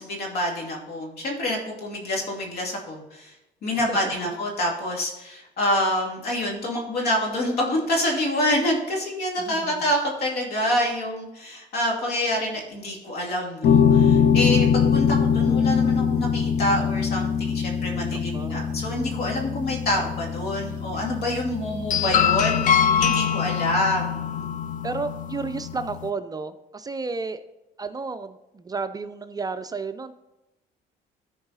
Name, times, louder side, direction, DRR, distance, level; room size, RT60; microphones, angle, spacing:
voice 1, 0.0-3.3 3.6-24.4, left 1 dB, 70° left, 0 dB, 2.4 m, -27 dB
voice 2, 3.7-4.1 9.4-9.9 17.9-18.8 22.8-23.2 24.8-27.4 27.8-30.2, right 4 dB, 20° right, 10 dB, 0.4 m, -33 dB
sound 1, 13.6-26.1, left 7 dB, 50° left, 0.6 m, -23 dB
14.0 x 4.8 x 4.0 m, 0.94 s
cardioid pair, 110°, 17 cm